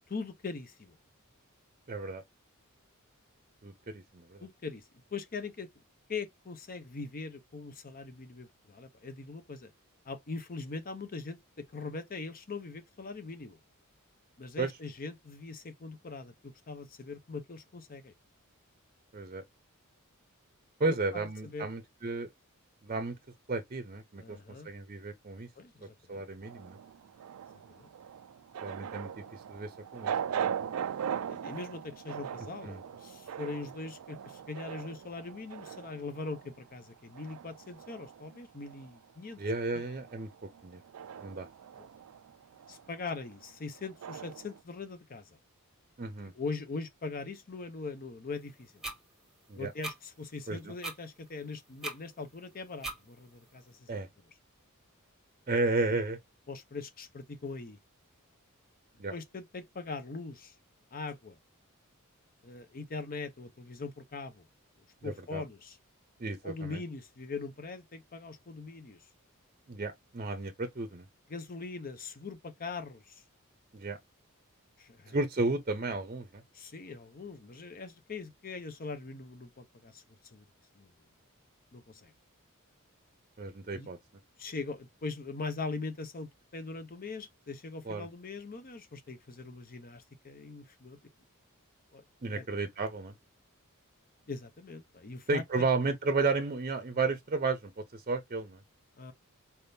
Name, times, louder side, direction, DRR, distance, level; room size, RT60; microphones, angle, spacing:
voice 1, 0.1-1.0 4.4-4.8 5.1-5.7 6.1-9.7 10.1-11.4 11.7-13.6 14.4-18.1 20.9-21.0 21.4-21.7 24.2-24.7 25.6-26.2 27.7-27.9 29.0-29.1 31.3-39.4 39.7-39.8 41.8-41.9 42.7-45.4 46.4-48.8 49.5-54.0 56.5-57.8 59.1-60.5 60.9-61.4 62.4-64.5 65.0-65.8 66.4-69.0 71.3-73.2 74.8-75.2 76.5-80.0 80.3-80.4 80.8-80.9 81.7-82.1 83.7-83.9 84.4-91.0 91.9-92.0 92.3-92.4 94.3-95.7 99.0-99.1, left 4 dB, 40° left, 0.7 m, -41 dB
voice 2, 1.9-2.2 3.6-4.5 14.6-14.7 19.1-19.4 20.8-22.3 22.8-23.2 23.5-24.4 24.6-25.5 26.1-26.8 28.6-30.1 32.6-32.8 39.4-40.3 40.6-40.8 41.2-41.5 46.0-46.3 49.5-49.7 50.5-50.7 53.9-54.1 55.5-56.2 59.0-59.1 65.0-65.4 66.2-66.8 69.7-71.1 73.7-74.0 75.1-76.4 83.4-84.0 87.8-88.1 92.2-93.1 95.3-98.6, right 3 dB, 35° right, 0.7 m, -33 dB
sound 1, 26.4-39.1 39.4-44.6, right 8 dB, 70° right, 0.4 m, -40 dB
sound 2, 48.8-49.0 49.8-50.0 50.8-51.0 51.8-52.0 52.8-53.0, right 2 dB, ahead, 1.0 m, -37 dB
4.3 x 3.5 x 2.7 m
head